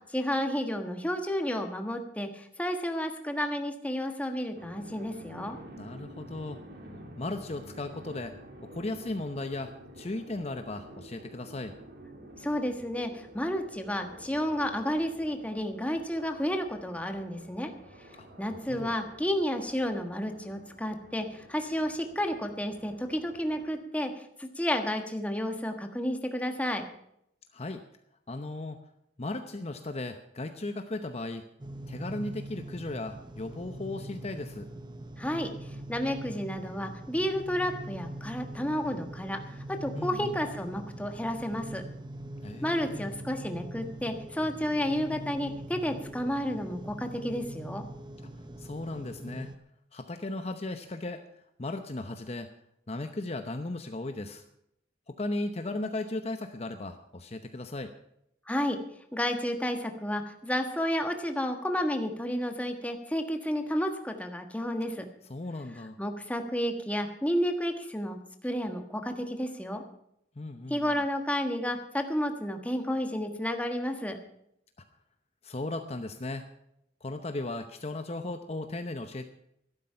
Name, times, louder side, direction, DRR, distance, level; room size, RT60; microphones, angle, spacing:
voice 1, 0.1-5.6 12.4-17.7 18.4-24.1 24.4-26.8 35.2-35.5 35.9-41.8 42.6-47.8 58.5-58.8 59.1-65.0 66.0-68.2 68.4-69.8 70.7-74.2, equal, 10° left, 5 dB, 1.4 m, -31 dB
sound 1, 4.5-23.7, right 1 dB, 55° right, 2.9 m, -50 dB
voice 2, 5.8-6.6 7.2-8.3 8.7-11.7 18.2-18.3 18.7-18.9 27.5-27.8 28.3-28.8 29.2-31.4 31.9-34.7 39.9-40.4 42.4-43.1 48.6-49.5 49.9-52.5 52.9-54.4 55.1-57.9 65.3-66.0 70.4-71.0 75.4-76.4 77.0-79.3, left 2 dB, 35° left, 7 dB, 0.8 m, -36 dB
sound 2, 31.6-49.6, right 1 dB, 25° right, 0.9 m, -42 dB
13.5 x 12.0 x 5.6 m, 0.76 s
head